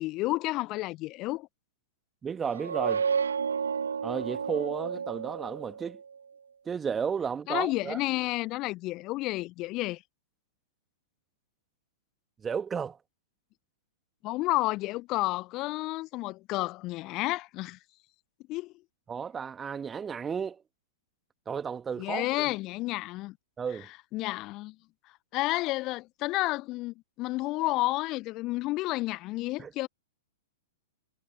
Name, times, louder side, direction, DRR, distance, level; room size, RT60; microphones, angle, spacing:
voice 1, 0.0-1.5 7.5-10.0 14.2-17.8 18.5-18.7 22.0-23.3 23.8-24.7 25.3-29.9, left 19 dB, 35° left, 1.0 m, -31 dB
voice 2, 2.2-3.0 4.0-6.0 6.7-8.0 12.4-13.0 19.1-20.6 21.5-22.5 23.6-23.9 29.6-29.7, right 6 dB, 15° right, 1.9 m, -33 dB
sound 1, 2.5-6.0, right 6 dB, 70° right, 1.3 m, -31 dB
figure-of-eight pair, 105°, 0 cm